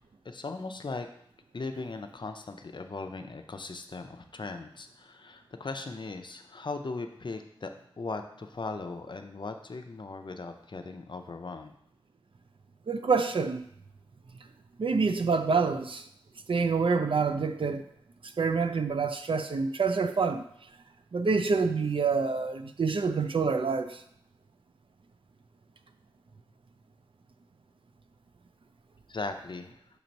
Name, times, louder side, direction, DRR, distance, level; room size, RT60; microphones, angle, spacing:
voice 1, 0.2-1.1 1.5-11.7 29.1-29.7, left 3 dB, 55° left, 0.6 m, -38 dB
voice 2, 12.9-13.6 14.8-16.0 16.5-17.8 18.4-20.4 21.1-23.9, right 4 dB, 70° right, 0.5 m, -27 dB
6.8 x 3.0 x 5.2 m
wide cardioid pair, 60°, 9 cm